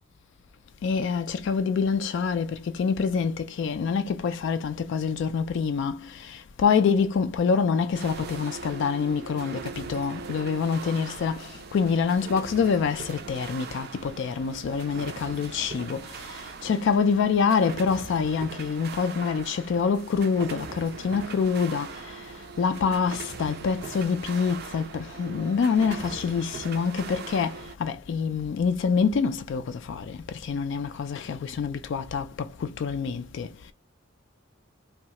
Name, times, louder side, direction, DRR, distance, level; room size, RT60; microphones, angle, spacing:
voice 1, 0.8-33.7, left 5 dB, 60° left, 0.3 m, -26 dB
sound 1, 7.9-27.7, right 5 dB, 50° right, 0.4 m, -41 dB
3.1 x 2.3 x 2.8 m
head